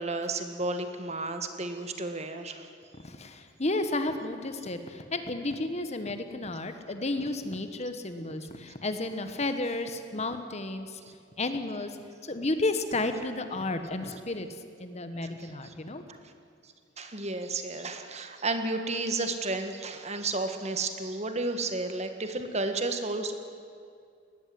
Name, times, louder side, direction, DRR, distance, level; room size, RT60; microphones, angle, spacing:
voice 1, 0.0-2.7 15.4-15.5 17.0-23.3, right 2 dB, 35° right, 7 dB, 1.6 m, -32 dB
voice 2, 3.0-11.0 11.4-14.5 14.8-16.0, left 2 dB, 35° left, 8 dB, 1.3 m, -32 dB
19.0 x 14.5 x 9.5 m, 2.3 s
head